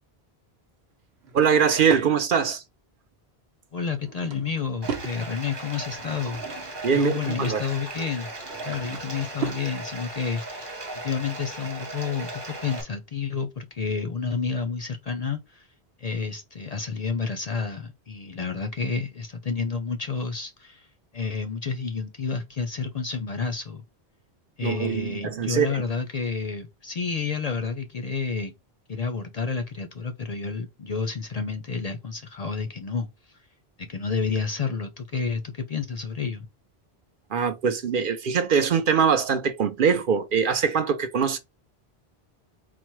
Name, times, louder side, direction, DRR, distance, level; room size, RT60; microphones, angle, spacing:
Drawer open or close / Wood, 1.2-2.1 3.9-5.2 5.7-6.9 8.2-9.7, right 6 dB, 80° right, 1.0 m, -37 dB
voice 1, 1.3-2.6 6.8-7.6 24.6-25.8 37.3-41.4, right 7 dB, 60° right, 0.7 m, -23 dB
voice 2, 3.7-8.3 8.6-10.7 11.0-15.7 16.0-20.9 21.1-23.8 24.6-28.5 28.9-33.1 33.9-36.5, left 5 dB, 50° left, 0.5 m, -30 dB
Bathtub (filling or washing), 4.8-12.8, right 2 dB, 25° right, 0.9 m, -37 dB
4.2 x 2.1 x 4.5 m
omnidirectional pair, 1.1 m